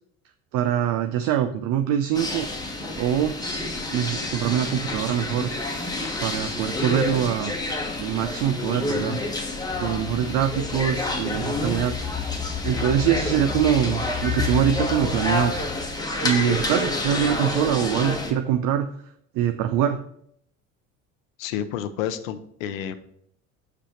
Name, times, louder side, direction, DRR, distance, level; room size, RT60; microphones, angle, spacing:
voice 1, 0.5-2.5 2.8-3.3 3.9-5.5 6.2-7.5 8.0-9.2 9.8-11.9 12.6-15.5 16.2-18.9 19.3-20.0, right 10 dB, 55° right, 8 dB, 0.6 m, -23 dB
sound 1, 2.1-18.3, left 2 dB, 10° left, 1.2 m, -29 dB
sound 2, 9.7-15.9, left 9 dB, 35° left, 0.9 m, -33 dB
voice 2, 21.4-22.9, left 10 dB, 75° left, 12 dB, 0.7 m, -30 dB
5.3 x 5.1 x 4.3 m, 0.70 s
hypercardioid pair, 75°, 41 cm